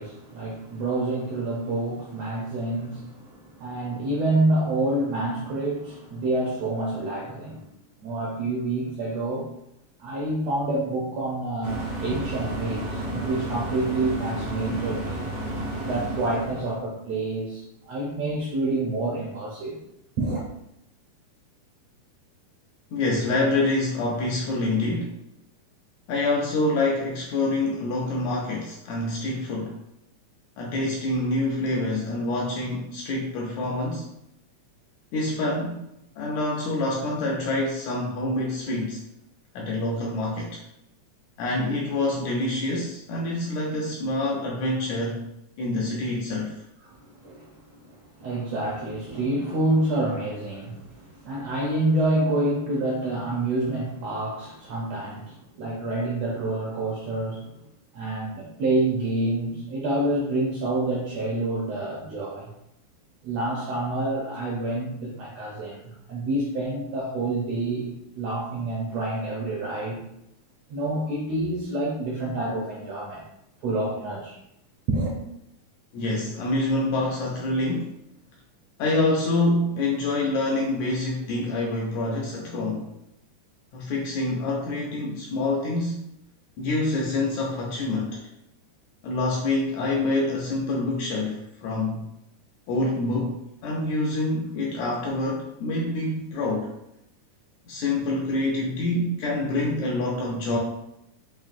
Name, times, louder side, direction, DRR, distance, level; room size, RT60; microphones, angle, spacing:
voice 1, 0.0-7.6 8.0-9.5 10.0-15.2 15.8-19.8 20.2-20.4 46.8-57.7 57.9-62.5 63.2-70.0 70.7-73.2 73.6-74.4 74.9-75.2, right 2 dB, 80° right, -4 dB, 1.5 m, -28 dB
sound 1, 11.6-16.8, right 1 dB, 60° right, 0.6 m, -32 dB
voice 2, 22.9-25.1 26.1-29.8 30.6-34.1 35.1-35.8 36.2-39.1 39.5-40.6 41.4-45.3 45.6-46.6 75.9-77.9 78.8-82.9 83.7-86.1 86.6-88.2 89.0-92.1 92.7-96.7 97.7-100.6, left 2 dB, 80° left, -2 dB, 1.7 m, -26 dB
5.8 x 2.6 x 2.5 m, 0.81 s
omnidirectional pair, 3.7 m